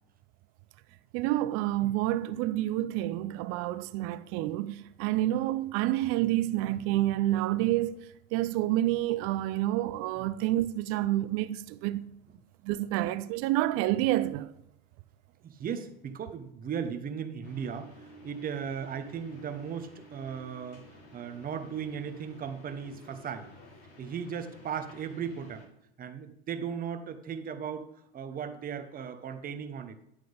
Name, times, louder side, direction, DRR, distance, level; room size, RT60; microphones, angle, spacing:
voice 1, 1.1-8.0 8.3-12.1 12.6-14.5, right 15 dB, 50° right, 0.6 m, -28 dB
voice 2, 15.4-17.9 18.2-20.8 21.1-23.5 24.0-25.7 26.0-27.9 28.1-30.0, right 7 dB, 25° right, 1.1 m, -37 dB
sound 1, 17.4-25.7, equal, 45° left, 3.7 m, -52 dB
11.0 x 7.6 x 3.5 m
hypercardioid pair, 105°, 32 cm